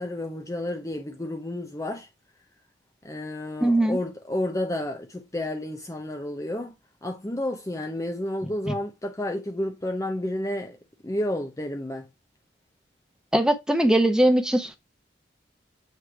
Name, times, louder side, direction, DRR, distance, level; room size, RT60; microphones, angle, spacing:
voice 1, 0.0-2.1 3.0-6.7 7.0-10.8 11.0-12.1, left 1 dB, 15° left, 0.6 m, -31 dB
voice 2, 3.6-4.0 8.7-8.8 13.3-14.8, right 1 dB, 5° right, 0.9 m, -21 dB
8.1 x 3.2 x 4.6 m
head